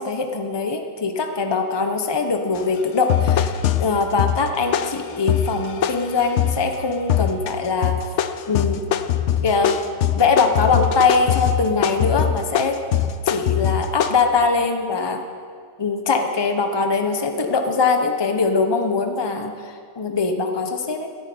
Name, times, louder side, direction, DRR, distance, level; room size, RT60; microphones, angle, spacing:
voice 1, 0.0-3.5 3.8-8.0 8.5-8.8 9.4-9.7 10.1-12.8 13.2-15.2 15.8-21.1, left 4 dB, 20° left, 5 dB, 0.9 m, -22 dB
sound 1, 2.6-2.7 3.1-6.7 7.1-7.5 7.8-14.2, left 9 dB, 60° left, 0.9 m, -22 dB
13.5 x 11.0 x 8.7 m, 2.1 s
omnidirectional pair, 1.5 m